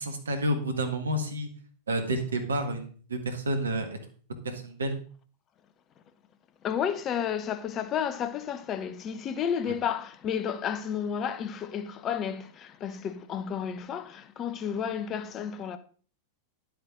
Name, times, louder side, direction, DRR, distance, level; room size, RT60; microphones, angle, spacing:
voice 1, 0.0-1.5 1.9-4.0 4.4-5.0, right 1 dB, 70° right, 1.7 m, -30 dB
voice 2, 6.6-15.8, left 8 dB, 30° left, 0.9 m, -32 dB
11.0 x 8.0 x 3.8 m
figure-of-eight pair, 90°, 0 cm